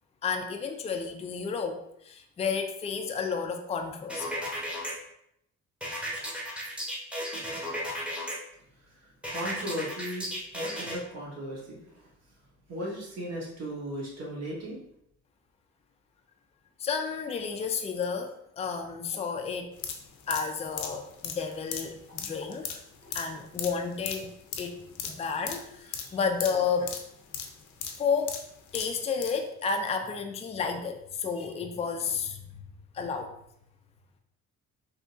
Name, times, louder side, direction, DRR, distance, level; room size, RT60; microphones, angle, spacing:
voice 1, 0.2-4.3 16.8-19.7 20.3-22.8 23.1-24.3 24.6-24.8 25.1-26.9 28.0-28.4 28.7-32.4 32.9-33.3, left 5 dB, 20° left, 5 dB, 0.4 m, -31 dB
sound 1, 4.1-4.9 5.8-8.3 9.2-11.0, equal, 5° right, 0.9 m, -34 dB
voice 2, 8.8-12.1 12.7-14.8 22.1-22.2 23.0-23.2 26.0-26.2, equal, 60° right, -3 dB, 1.3 m, -37 dB
sound 2, 19.7-29.4 29.7-29.8, left 7 dB, 75° left, 0.6 m, -38 dB
3.7 x 2.7 x 2.5 m, 0.75 s
cardioid pair, 90°, 30 cm